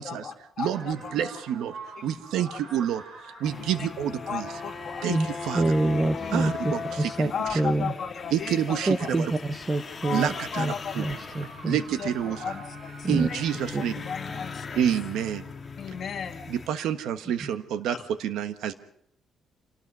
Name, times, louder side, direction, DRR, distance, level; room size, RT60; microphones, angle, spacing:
voice 1, 0.0-1.4 2.0-2.1 2.4-2.6 3.3-3.4 3.8-3.9 4.3-5.4 6.2-6.7 7.3-9.1 10.0-11.3 11.7-13.5 13.8-14.8 15.7-16.5, left 7 dB, 40° left, 4 dB, 2.2 m, -36 dB
voice 2, 0.6-1.7 2.0-3.0 3.4-4.5 5.0-5.2 5.4-5.6 6.3-7.1 7.5-7.6 8.3-9.3 10.1-11.0 11.6-12.5 13.1-13.9 14.7-15.4 16.5-18.7, right 9 dB, 80° right, 11 dB, 1.3 m, -28 dB
sound 1, 0.7-7.7 8.3-8.4 10.3-13.7, right 4 dB, 60° right, 4.7 m, -47 dB
sound 2, 3.4-16.7, left 5 dB, 25° left, 1.6 m, -39 dB
voice 3, 5.5-6.5 7.0-7.3 7.5-7.9 8.9-11.8 13.0-13.3 13.7-13.8 17.4-17.5, right 2 dB, 15° right, 10 dB, 0.8 m, -26 dB
27.0 x 18.5 x 5.5 m, 0.71 s
cardioid pair, 170°, 0 cm